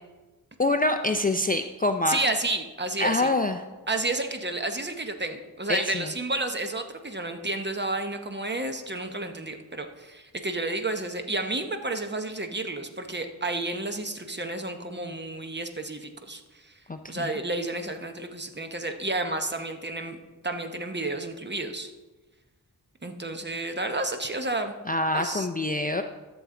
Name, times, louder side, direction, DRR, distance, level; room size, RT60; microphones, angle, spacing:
voice 1, 0.6-2.2 3.0-3.6 5.7-6.1 16.9-17.3 24.9-26.0, left 2 dB, 25° left, 5 dB, 0.4 m, -26 dB
voice 2, 2.1-3.3 3.9-16.7 17.1-20.2 20.4-21.9 23.0-24.7 25.1-25.5, right 2 dB, 25° right, 6 dB, 0.8 m, -31 dB
12.5 x 7.1 x 3.7 m, 1.2 s
wide cardioid pair, 85°, 40 cm